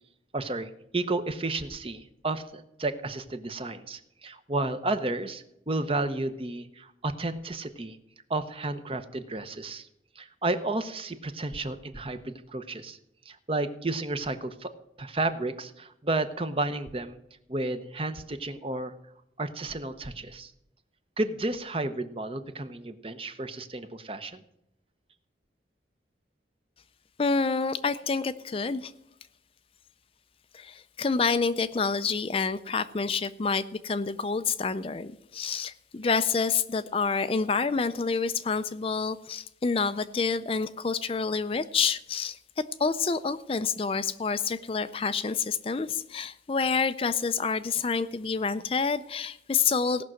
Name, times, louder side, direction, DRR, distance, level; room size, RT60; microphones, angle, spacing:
voice 1, 0.3-8.0 8.3-9.9 10.2-13.0 13.3-14.7 15.0-17.2 17.5-18.9 19.4-20.5 21.2-24.4, right 2 dB, 30° right, 11 dB, 0.8 m, -32 dB
voice 2, 27.2-28.9 30.5-42.4 42.8-50.0, left 5 dB, 30° left, 12 dB, 0.4 m, -28 dB
17.0 x 6.1 x 7.6 m, 0.81 s
head